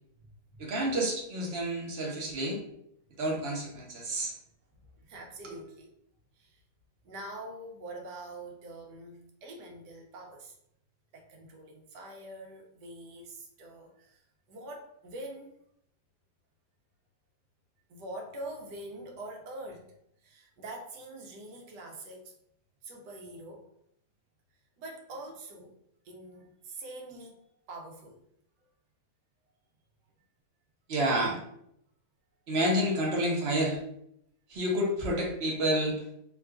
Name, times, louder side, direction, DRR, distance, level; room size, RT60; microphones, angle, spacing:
voice 1, 0.6-2.6 3.2-4.3 5.4-5.5 30.9-31.4 32.5-33.8 34.5-36.0, right 1 dB, 50° right, -1 dB, 0.8 m, -29 dB
voice 2, 5.0-5.9 6.4-6.6 7.0-10.5 11.1-14.2 14.5-15.6 17.9-19.9 20.2-22.3 22.8-23.7 24.8-25.7 26.0-28.2, right 1 dB, 80° right, 1 dB, 1.3 m, -44 dB
3.7 x 2.3 x 2.4 m, 0.73 s
omnidirectional pair, 1.8 m